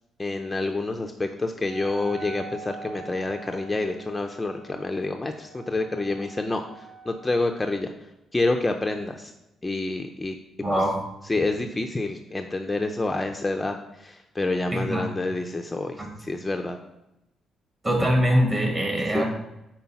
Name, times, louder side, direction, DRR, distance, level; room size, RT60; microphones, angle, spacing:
voice 1, 0.2-7.9 8.3-9.3 9.6-10.4 10.7-10.8 11.3-16.8 19.1-19.2, left 2 dB, 20° left, 4 dB, 0.5 m, -28 dB
Wind instrument woodwind instrument, 1.6-7.4, right 4 dB, 75° right, 1.8 m, -44 dB
voice 2, 10.6-11.0 14.7-15.1 16.0-16.1 17.8-19.3, equal, 25° right, 1 dB, 1.8 m, -23 dB
5.4 x 4.4 x 5.8 m, 0.90 s
cardioid pair, 90°, 0 cm